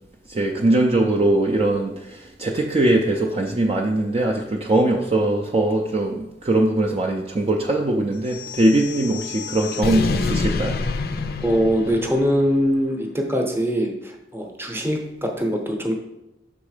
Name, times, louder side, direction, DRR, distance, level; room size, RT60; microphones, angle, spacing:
voice 1, 0.3-10.8, right 1 dB, 35° right, 1 dB, 0.4 m, -21 dB
sound 1, 8.2-12.6, left 4 dB, 60° left, 0.4 m, -27 dB
voice 2, 11.4-15.9, equal, 15° right, 2 dB, 0.8 m, -22 dB
6.1 x 3.6 x 4.9 m, 0.90 s
head